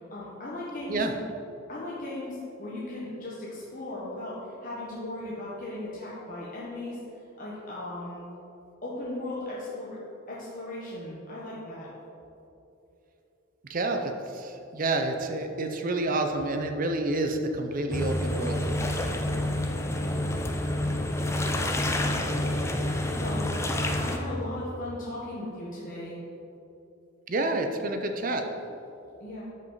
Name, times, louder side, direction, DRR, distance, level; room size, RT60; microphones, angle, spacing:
voice 1, 0.1-1.0 1.7-7.0 7.4-8.2 8.8-10.0 10.3-11.9 21.3-23.5 23.8-26.2 29.2-29.4, left 1 dB, 45° left, -7 dB, 1.4 m, -37 dB
voice 2, 13.7-18.7 27.3-28.4, right 2 dB, 45° right, 5 dB, 0.6 m, -29 dB
sound 1, 17.9-24.2, left 1 dB, 15° left, 0.5 m, -28 dB
12.5 x 5.4 x 4.0 m, 2.9 s
head